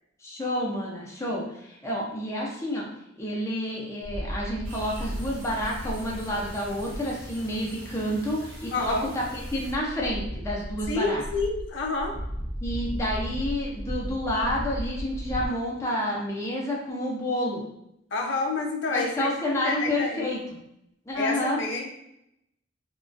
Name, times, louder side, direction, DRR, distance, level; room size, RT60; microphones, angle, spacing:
voice 1, 0.2-2.9 3.2-11.2 12.6-17.6 18.9-20.4 21.1-21.6, left 1 dB, 15° left, -4 dB, 0.5 m, -29 dB
sound 1, 4.0-7.1 7.5-7.6 8.5-8.6 8.8-15.5, equal, 60° right, 0.5 m, -35 dB
sound 2, 4.6-9.7, right 1 dB, 30° right, 0.8 m, -43 dB
voice 2, 8.7-9.1 10.9-12.2 18.1-20.3 21.2-21.9, left 3 dB, 70° left, 2 dB, 0.4 m, -29 dB
2.3 x 2.2 x 2.4 m, 0.79 s
head